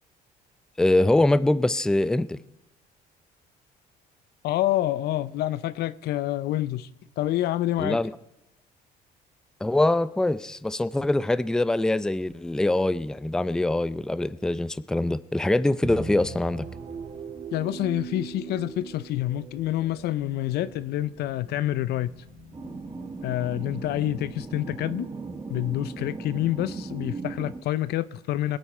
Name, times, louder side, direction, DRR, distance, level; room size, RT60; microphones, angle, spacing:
voice 1, 0.8-2.4 7.8-8.1 9.6-16.7, left 2 dB, 5° left, 0.5 m, -23 dB
voice 2, 4.4-6.9 7.2-8.0 17.5-22.1 23.2-25.1 25.5-28.6, left 14 dB, 75° left, 0.6 m, -27 dB
sound 1, 15.8-24.6, right 4 dB, 40° right, 2.0 m, -41 dB
sound 2, 22.5-27.6, right 3 dB, 25° right, 1.4 m, -37 dB
23.0 x 8.6 x 4.4 m
cardioid pair, 110°, 17 cm